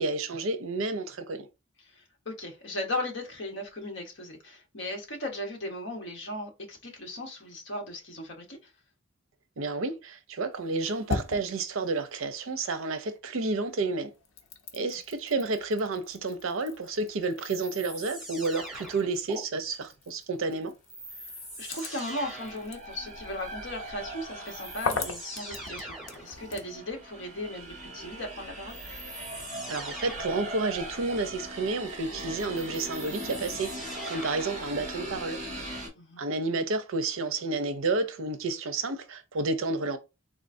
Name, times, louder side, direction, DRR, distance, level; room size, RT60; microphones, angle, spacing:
voice 1, 0.0-1.5 9.6-14.1 14.7-20.7 29.7-35.4 36.2-40.0, right 3 dB, 85° right, 0.6 m, -30 dB
voice 2, 1.8-8.7 21.6-28.8 35.9-36.2, left 1 dB, 65° left, 1.0 m, -37 dB
sound 1, 10.5-13.2 13.5-26.8, left 4 dB, 85° left, 0.7 m, -41 dB
sound 2, 17.4-19.4 20.9-22.7 24.0-24.1 24.4-26.3 28.7-30.5 32.2-34.6, right 1 dB, ahead, 1.3 m, -43 dB
sound 3, 21.8-35.9, right 1 dB, 35° right, 1.0 m, -40 dB
3.6 x 2.5 x 2.6 m
head